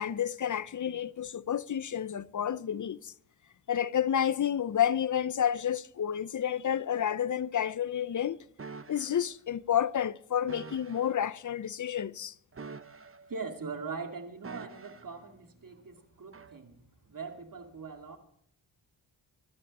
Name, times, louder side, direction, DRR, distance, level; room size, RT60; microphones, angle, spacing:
voice 1, 0.0-3.1 3.7-8.4 8.9-12.3, left 9 dB, 40° left, 0.6 m, -30 dB
sound 1, 8.6-9.2 10.5-11.1 12.5-13.4 14.4-15.2 16.3-16.6, right 5 dB, 30° right, 0.9 m, -46 dB
voice 2, 13.3-18.2, right 4 dB, 45° right, 2.5 m, -41 dB
25.0 x 11.0 x 4.2 m
cardioid pair, 70°, 46 cm